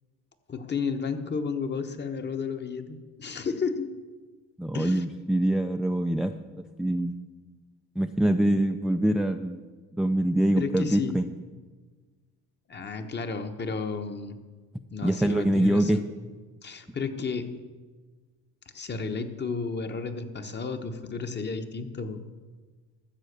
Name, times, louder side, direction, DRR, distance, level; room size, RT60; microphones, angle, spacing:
voice 1, 0.5-3.9 4.7-5.0 10.5-11.2 12.7-14.4 14.9-16.1 16.6-17.5 18.7-22.2, left 5 dB, 30° left, 7 dB, 1.1 m, -32 dB
voice 2, 4.6-6.3 6.8-7.2 8.0-9.6 9.9-11.3 15.0-16.0, right 1 dB, ahead, 6 dB, 0.4 m, -24 dB
13.0 x 7.5 x 6.8 m, 1.4 s
cardioid pair, 100°, 34 cm